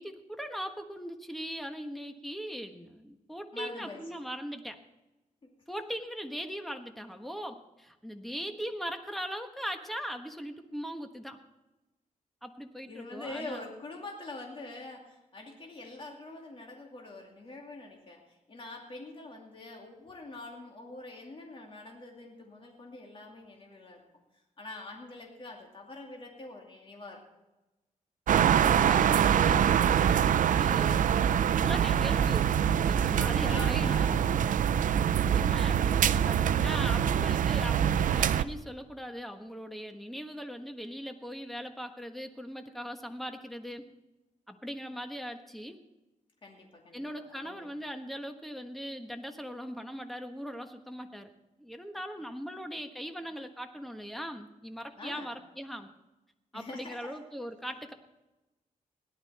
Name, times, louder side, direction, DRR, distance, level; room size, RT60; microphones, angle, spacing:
voice 1, 0.0-4.8 5.7-11.4 12.4-13.7 28.3-31.3 31.6-34.3 35.3-43.8 44.5-45.8 46.9-51.3 51.6-55.9 56.5-57.9, equal, ahead, 6 dB, 1.3 m, -40 dB
voice 2, 3.5-4.2 5.4-5.5 12.9-24.0 24.6-27.2 33.1-33.2 33.5-34.2 46.4-47.7 55.0-55.3 56.5-57.1, left 2 dB, 40° left, 0 dB, 2.4 m, -45 dB
sound 1, 28.3-38.4, right 9 dB, 70° right, 0.5 m, -24 dB
17.0 x 11.5 x 4.3 m, 1.0 s
wide cardioid pair, 110°, 14 cm